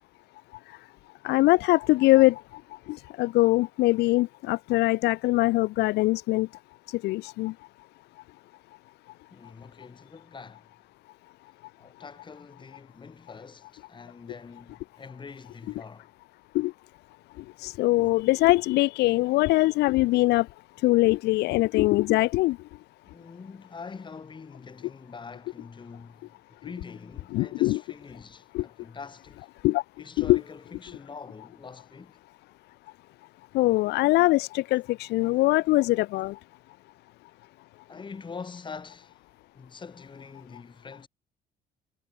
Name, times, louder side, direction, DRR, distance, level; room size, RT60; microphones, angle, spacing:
voice 1, 1.2-2.4 2.9-6.5 7.0-7.5 16.5-16.7 17.6-20.5 20.8-22.6 27.3-27.8 28.5-28.6 29.6-29.8 30.2-30.4 33.5-36.3, left 19 dB, 80° left, 0.6 m, -22 dB
voice 2, 9.3-10.7 11.8-16.1 23.1-29.5 30.0-32.2 37.9-39.2 39.5-41.1, left 5 dB, 30° left, 4.5 m, -44 dB
cardioid pair, 110°, 17 cm